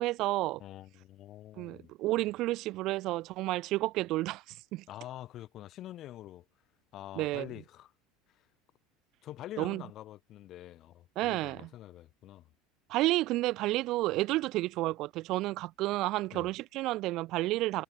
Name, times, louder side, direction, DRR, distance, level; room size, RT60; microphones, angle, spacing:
voice 1, 0.0-0.6 1.6-4.8 7.2-7.5 9.6-9.8 11.2-11.7 12.9-17.8, right 18 dB, 55° right, 0.3 m, -31 dB
voice 2, 0.6-1.9 4.9-6.4 6.9-7.9 8.3-8.4 9.2-12.5 16.3-16.5, left 13 dB, 50° left, 1.3 m, -46 dB
supercardioid pair, 105°, 0 cm